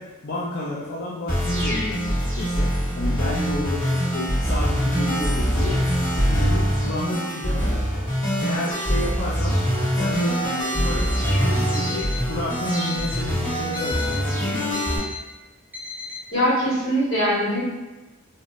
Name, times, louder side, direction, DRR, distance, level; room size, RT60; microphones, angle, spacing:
voice 1, 0.0-8.0 8.4-9.6 9.9-15.0, left 2 dB, 50° left, -7 dB, 0.5 m, -31 dB
sound 1, 1.3-15.0, equal, 25° left, 1.5 m, -23 dB
Alarm, 10.5-11.2 11.7-12.3 12.7-13.3 13.7-14.3 14.7-15.2 15.7-16.2, left 4 dB, 10° right, 0.4 m, -36 dB
voice 2, 16.3-17.6, equal, 70° left, -8 dB, 1.5 m, -21 dB
2.6 x 2.5 x 3.1 m, 1.1 s
head